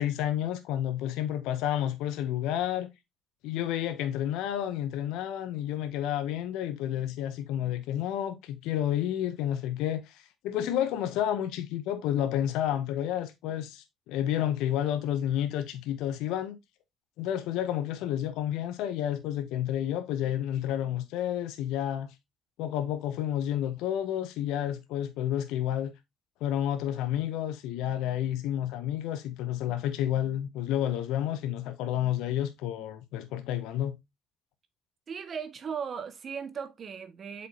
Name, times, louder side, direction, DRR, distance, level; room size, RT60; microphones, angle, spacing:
voice 1, 0.0-2.9 3.4-16.6 17.2-22.1 22.6-25.9 26.4-34.0, left 11 dB, 75° left, 0.8 m, -30 dB
voice 2, 35.1-37.5, right 6 dB, 45° right, 1.6 m, -37 dB
7.7 x 5.4 x 2.8 m
hypercardioid pair, 60°, 0 cm